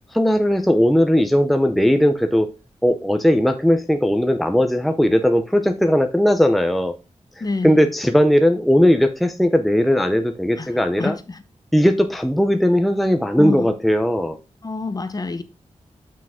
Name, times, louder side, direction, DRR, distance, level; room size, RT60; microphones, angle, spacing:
voice 1, 0.1-2.5 2.8-6.9 7.6-11.1 11.7-14.4, equal, ahead, 0.6 m, -18 dB
voice 2, 7.4-7.9 10.6-11.4 13.4-13.7 14.6-15.4, left 3 dB, 30° left, 0.9 m, -27 dB
7.3 x 6.0 x 3.6 m
wide cardioid pair, 135°, 12 cm